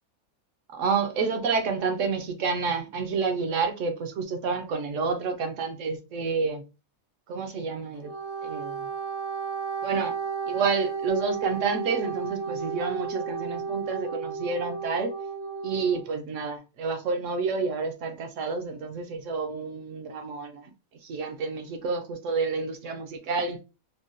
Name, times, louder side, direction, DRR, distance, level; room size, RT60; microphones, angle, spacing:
voice 1, 0.7-6.6 7.3-8.1 8.4-8.9 9.8-10.1 10.5-15.1 15.6-20.7 21.0-23.6, right 4 dB, 65° right, 0.9 m, -29 dB
Wind instrument woodwind instrument, 7.9-16.0, right 5 dB, 65° left, 1.1 m, -33 dB
3.7 x 2.2 x 2.5 m
omnidirectional pair, 1.5 m